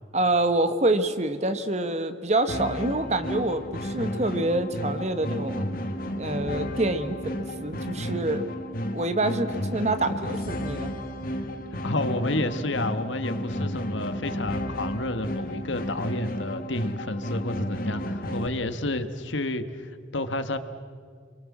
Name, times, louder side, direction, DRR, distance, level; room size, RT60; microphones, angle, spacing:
voice 1, 0.1-5.7 6.2-8.4 8.9-10.9, right 2 dB, 35° right, 10 dB, 1.3 m, -26 dB
sound 1, 2.5-18.5, equal, 45° left, 1.7 m, -32 dB
voice 2, 11.8-20.6, left 2 dB, 75° left, 10 dB, 1.5 m, -30 dB
30.0 x 23.5 x 7.4 m, 2.1 s
head